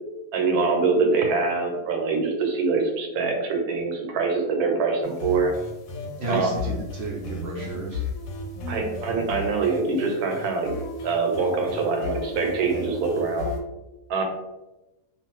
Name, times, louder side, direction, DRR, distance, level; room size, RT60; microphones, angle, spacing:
voice 1, 0.3-5.5 6.3-6.5 8.7-10.7 11.0-13.5 14.1-14.2, right 4 dB, 80° right, 3 dB, 1.1 m, -24 dB
sound 1, 5.0-13.6, left 2 dB, 70° left, 1.0 m, -34 dB
voice 2, 6.2-8.0, right 2 dB, 60° right, -3 dB, 0.7 m, -32 dB
2.5 x 2.4 x 2.9 m, 1.0 s
omnidirectional pair, 1.6 m